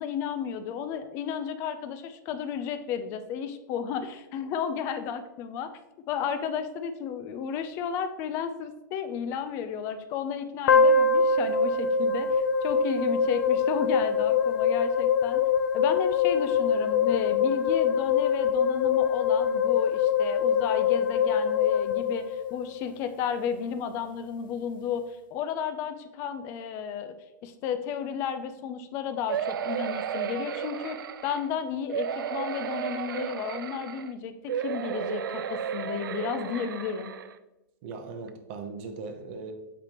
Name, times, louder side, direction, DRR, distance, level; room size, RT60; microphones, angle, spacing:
voice 1, 0.0-5.7 6.1-15.4 15.7-27.2 27.4-31.0 31.2-37.2, left 7 dB, 25° left, 10 dB, 0.4 m, -33 dB
sound 1, 10.7-22.9, left 5 dB, 85° left, 0.6 m, -24 dB
sound 2, 29.3-31.5 31.9-34.1 34.5-37.3 37.9-38.0 38.3-38.4, right 8 dB, 85° right, 0.5 m, -33 dB
voice 2, 37.8-39.5, right 4 dB, 35° right, 6 dB, 0.8 m, -39 dB
7.3 x 5.0 x 3.0 m, 0.97 s
supercardioid pair, 165°, 11 cm